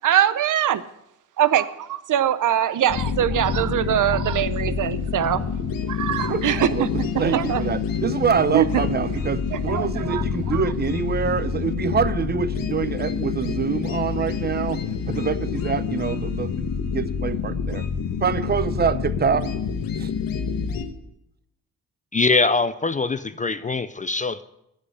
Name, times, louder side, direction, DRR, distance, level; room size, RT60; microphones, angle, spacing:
voice 1, 0.0-0.8 1.4-5.4 5.9-6.9 7.1-7.6 8.5-8.6 9.5-10.6, right 10 dB, 65° right, 15 dB, 0.7 m, -22 dB
sound 1, 2.9-20.9, left 6 dB, 85° left, 1.3 m, -27 dB
voice 2, 6.3-6.9 7.2-16.6 16.9-17.8 18.2-19.5 20.0-20.1, right 6 dB, 30° right, 15 dB, 0.6 m, -25 dB
voice 3, 22.1-24.4, left 3 dB, 25° left, 14 dB, 0.4 m, -22 dB
9.9 x 7.7 x 7.9 m, 0.83 s
wide cardioid pair, 130°, 33 cm